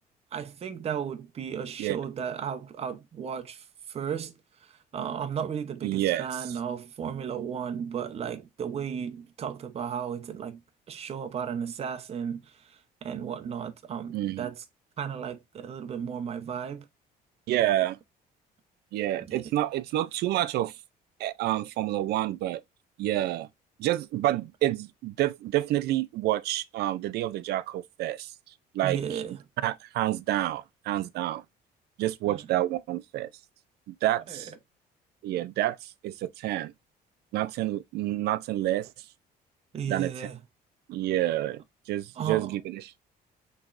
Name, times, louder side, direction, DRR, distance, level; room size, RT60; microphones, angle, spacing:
voice 1, 0.3-4.3 4.6-10.6 10.9-14.6 15.0-16.9 19.2-19.4 28.8-29.4 32.3-32.5 34.3-34.4 39.7-40.4 42.1-42.6, right 7 dB, 35° right, 0.7 m, -34 dB
voice 2, 5.8-6.3 14.1-14.5 17.5-18.0 18.9-20.7 21.2-22.6 23.0-23.5 23.8-28.3 28.7-29.2 29.6-31.4 32.0-33.3 33.9-34.5 35.2-36.7 37.3-38.9 39.9-40.3 40.9-43.0, right 14 dB, 75° right, 0.5 m, -28 dB
6.1 x 3.2 x 2.5 m
cardioid pair, 110°, 17 cm